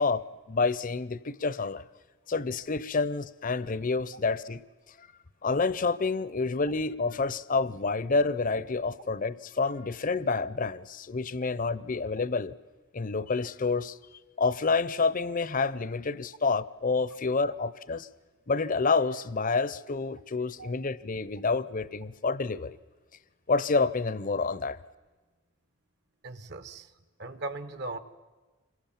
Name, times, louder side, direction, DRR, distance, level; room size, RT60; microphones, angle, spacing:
voice 1, 0.0-1.8 2.3-4.6 5.0-5.1 5.4-12.5 12.9-14.0 14.4-18.1 18.5-22.8 23.5-24.8, left 4 dB, 40° left, 17 dB, 0.7 m, -28 dB
voice 2, 26.2-26.9 27.2-28.0, right 2 dB, 55° right, 11 dB, 1.3 m, -38 dB
27.0 x 22.5 x 7.3 m, 1.3 s
head